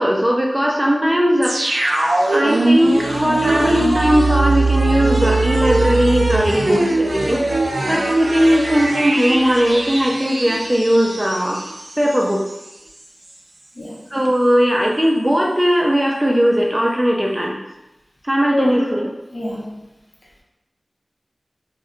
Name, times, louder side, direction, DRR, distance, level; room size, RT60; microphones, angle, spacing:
voice 1, 0.0-1.8 2.3-11.6 12.0-12.5 14.1-17.6 18.2-19.1, equal, 20° right, -1 dB, 0.4 m, -18 dB
sound 1, 1.4-12.2 12.5-12.6, right 2 dB, 85° right, 0.4 m, -20 dB
voice 2, 19.3-19.7, left 1 dB, 50° left, -4 dB, 0.8 m, -25 dB
3.8 x 2.1 x 2.4 m, 0.94 s
wide cardioid pair, 70°, 0 cm